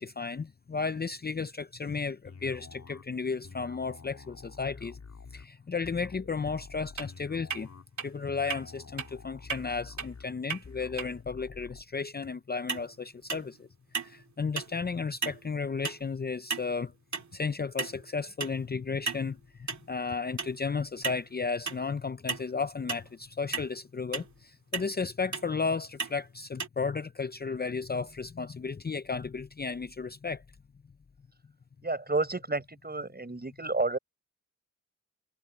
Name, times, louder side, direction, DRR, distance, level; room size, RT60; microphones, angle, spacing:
voice 1, 0.0-5.0 5.3-7.7 8.0-13.7 14.0-16.9 17.3-30.4, left 5 dB, 30° left, 0.6 m, -34 dB
sound 1, 2.2-11.8, left 5 dB, 60° left, 3.5 m, -49 dB
sound 2, 7.0-7.1 7.5-7.6 8.0-8.1 8.5-8.6 9.0-9.1 9.5-9.6 10.0-10.1 10.5-10.6 11.0-11.1 12.7-12.9 13.3-13.6 13.9-14.2 14.6-14.8 15.2-15.4 15.8-16.0 16.5-16.8 17.1-17.3 17.8-18.0 18.4-18.6 19.1-19.3 19.7-19.9 20.4-20.6 21.0-21.2 21.7-21.9 22.3-22.5 22.9-23.1 23.5-23.7 24.1-24.3 24.7-24.9 25.3-25.5 26.0-26.2 26.6-26.7, right 5 dB, 65° right, 2.5 m, -34 dB
voice 2, 31.8-34.0, right 3 dB, 30° right, 6.7 m, -30 dB
cardioid pair, 65°, 31 cm